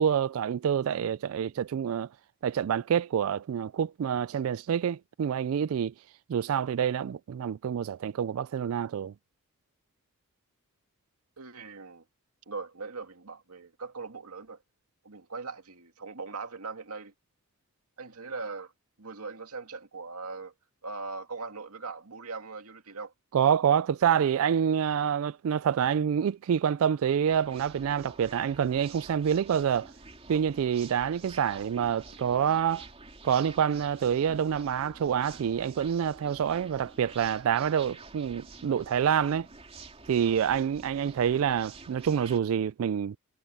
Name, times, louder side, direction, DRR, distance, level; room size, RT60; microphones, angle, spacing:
voice 1, 0.0-2.1 2.4-5.9 6.3-9.1 23.3-29.9 30.3-32.9 33.2-39.5 40.1-43.2, right 8 dB, 65° right, 0.3 m, -27 dB
voice 2, 11.4-12.0 12.5-14.6 15.0-17.1 18.0-18.7 19.0-20.5 20.8-23.1, right 4 dB, 85° right, 2.3 m, -40 dB
sound 1, 27.3-42.4, right 3 dB, 25° right, 3.1 m, -49 dB
head